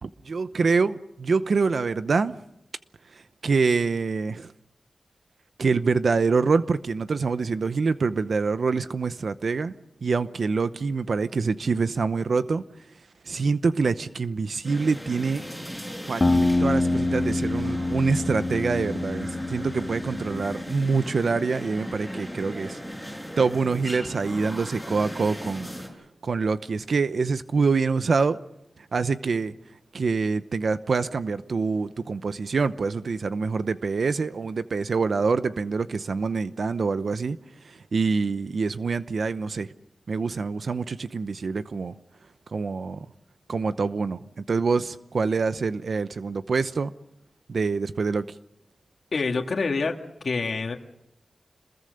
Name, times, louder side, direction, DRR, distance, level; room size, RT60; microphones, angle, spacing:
voice 1, 0.0-2.4 3.4-4.5 5.6-9.7 10.0-12.6 13.3-15.4 16.1-22.8 23.4-25.7 26.2-28.4 28.9-29.5 29.9-37.4 37.6-39.7 40.1-41.9 42.5-43.1 43.5-44.2 44.5-46.9 47.5-48.2, right 4 dB, 65° right, 0.8 m, -25 dB
sound 1, 14.6-25.9, equal, 5° right, 6.9 m, -37 dB
sound 2, 16.2-20.9, left 2 dB, 25° left, 2.4 m, -26 dB
voice 2, 49.1-49.9 50.2-50.8, left 4 dB, 65° left, 2.0 m, -26 dB
27.0 x 21.5 x 6.6 m
wide cardioid pair, 130°, 0 cm